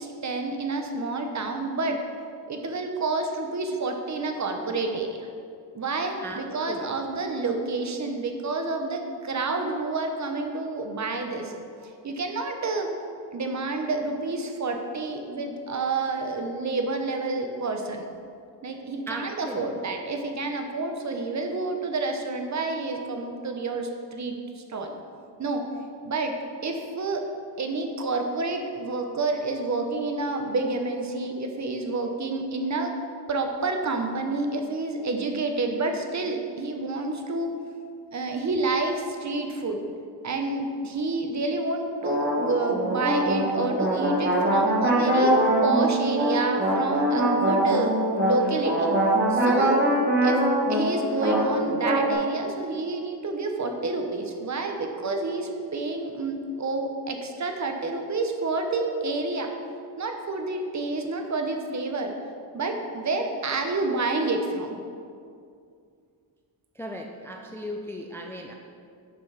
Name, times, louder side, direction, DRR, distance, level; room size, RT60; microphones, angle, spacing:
voice 1, 0.0-2.0 2.5-5.3 5.7-11.5 12.0-12.9 13.3-18.0 18.6-24.9 25.4-25.6 26.0-26.3 26.6-27.3 27.6-32.9 33.3-37.5 38.1-39.8 40.2-47.9 48.2-48.9 49.3-49.8 50.2-50.4 50.7-59.5 60.0-62.1 62.5-64.8, right 3 dB, 40° right, 4 dB, 0.8 m, -29 dB
voice 2, 19.1-19.7 66.8-68.5, equal, 5° left, 2 dB, 0.4 m, -37 dB
sound 1, 42.0-52.1, right 1 dB, 25° right, 1.4 m, -23 dB
6.8 x 5.3 x 5.6 m, 2.3 s
wide cardioid pair, 135°, 45 cm